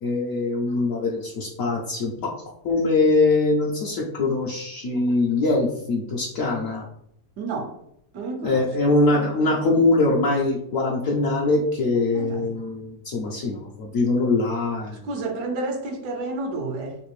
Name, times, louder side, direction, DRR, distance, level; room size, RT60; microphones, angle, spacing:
voice 1, 0.0-2.3 2.6-6.8 8.4-15.0, left 2 dB, 70° left, 0.8 m, -22 dB
voice 2, 7.4-7.8 8.1-9.3 12.1-12.6 15.0-17.0, right 2 dB, 75° right, 1.2 m, -31 dB
3.3 x 2.5 x 3.1 m
omnidirectional pair, 1.9 m